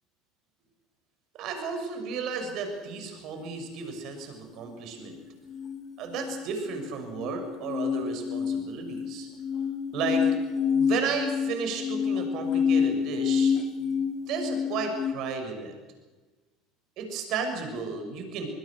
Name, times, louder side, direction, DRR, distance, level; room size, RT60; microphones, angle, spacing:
voice 1, 1.3-5.2 6.0-9.3 9.9-10.3 10.5-15.8 17.0-18.5, right 5 dB, 60° right, 5 dB, 6.5 m, -34 dB
sound 1, 5.5-15.1, left 7 dB, 40° left, 2.7 m, -28 dB
27.5 x 22.0 x 6.5 m, 1.2 s
hypercardioid pair, 75°, 0 cm